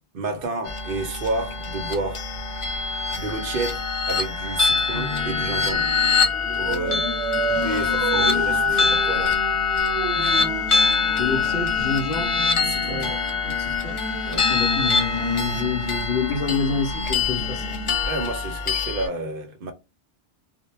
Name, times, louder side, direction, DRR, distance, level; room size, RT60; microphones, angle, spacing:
voice 1, 0.1-2.2 3.2-5.9 6.5-7.1 7.5-9.4 10.1-10.5 12.6-13.1 14.3-14.5 18.0-19.7, right 3 dB, 60° right, 0.7 m, -30 dB
sound 1, 0.7-19.1, left 5 dB, 45° left, 0.4 m, -24 dB
sound 2, 4.9-17.9, left 4 dB, 80° left, 1.1 m, -34 dB
Dog, 6.3-12.0, right 8 dB, 85° right, 0.9 m, -31 dB
voice 2, 11.1-12.4 12.8-13.2 13.6-14.0 14.5-17.8, left 4 dB, 60° left, 0.7 m, -27 dB
2.1 x 2.1 x 3.0 m
omnidirectional pair, 1.1 m